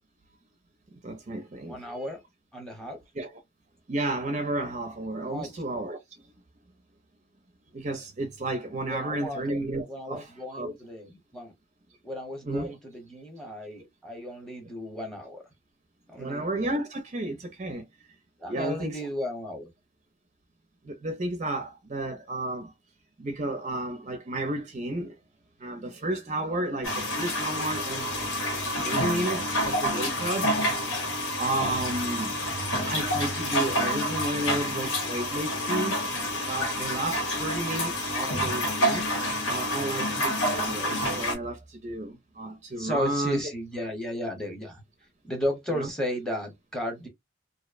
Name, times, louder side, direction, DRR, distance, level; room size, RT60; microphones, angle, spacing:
voice 1, 0.9-2.1 3.1-3.3 3.9-6.2 7.7-10.7 12.4-12.7 16.2-17.9 18.5-19.0 20.8-22.7 23.2-25.2 25.6-30.8 31.4-32.3 32.9-36.1 36.5-39.0 39.5-43.5 45.7-45.9, right 1 dB, 35° right, 0.5 m, -32 dB
voice 2, 1.7-2.2 2.5-3.0 5.2-5.5 8.9-9.4 9.9-11.5 12.0-15.4 16.1-16.4 18.4-19.7 42.8-44.8 45.2-47.1, equal, 5° left, 0.8 m, -34 dB
sound 1, 26.8-41.4, equal, 85° left, 1.1 m, -28 dB
2.6 x 2.0 x 2.4 m
head